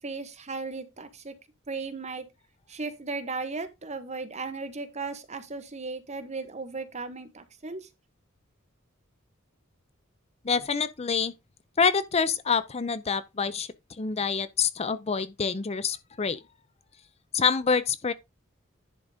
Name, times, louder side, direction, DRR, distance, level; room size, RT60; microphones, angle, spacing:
voice 1, 0.0-1.3 1.7-2.2 2.7-7.9, right 3 dB, 35° right, 1.3 m, -36 dB
voice 2, 10.4-11.3 11.8-16.4 17.3-18.1, left 5 dB, 30° left, 0.5 m, -26 dB
10.5 x 3.9 x 5.0 m
head